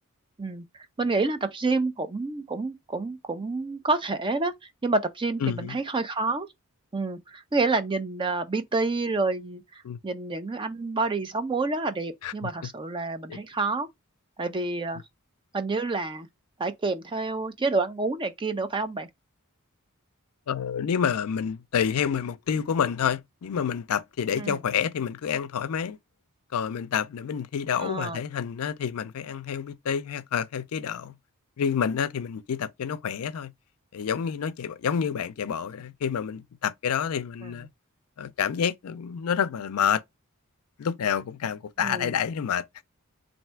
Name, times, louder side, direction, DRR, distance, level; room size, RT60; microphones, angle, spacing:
voice 1, 1.0-4.5 4.8-6.5 6.9-13.9 14.4-15.0 15.5-16.3 16.6-19.1 24.3-24.6 27.8-28.2 37.4-37.5 41.8-42.2, right 3 dB, 25° right, 0.5 m, -28 dB
voice 2, 5.4-5.7 9.8-10.0 12.2-12.5 13.3-13.4 20.5-26.0 26.5-31.1 31.6-33.5 33.9-37.7 38.2-40.0 40.8-42.8, left 7 dB, 75° left, 0.4 m, -28 dB
3.3 x 2.6 x 4.3 m
head